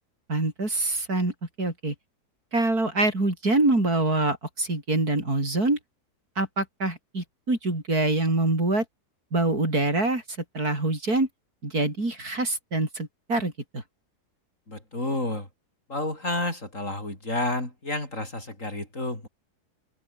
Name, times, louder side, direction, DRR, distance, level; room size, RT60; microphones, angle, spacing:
voice 1, 0.3-1.9 2.5-5.8 6.4-8.8 9.3-10.2 10.5-11.3 11.6-13.8, right 2 dB, 65° right, 6.6 m, -25 dB
voice 2, 14.7-15.5 15.9-19.3, left 1 dB, 50° left, 7.0 m, -30 dB
open air
omnidirectional pair, 1.7 m